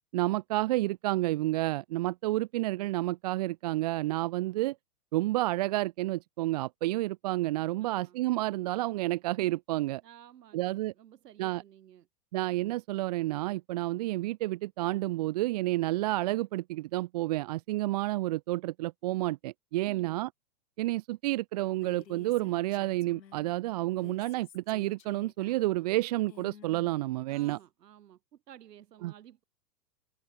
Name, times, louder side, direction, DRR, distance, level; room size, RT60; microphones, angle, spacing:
voice 1, 0.1-4.8 5.1-10.0 10.5-10.9 11.4-11.6 12.3-20.3 20.8-27.6 29.0-29.1, right 17 dB, 30° right, 0.4 m, -30 dB
voice 2, 7.8-8.2 10.0-12.1 19.8-20.2 27.3-29.4, right 11 dB, 75° right, 3.9 m, -54 dB
Female speech woman speaking, 21.7-23.5 23.9-27.6, left 8 dB, 80° left, 5.0 m, -54 dB
hypercardioid pair, 125°, 49 cm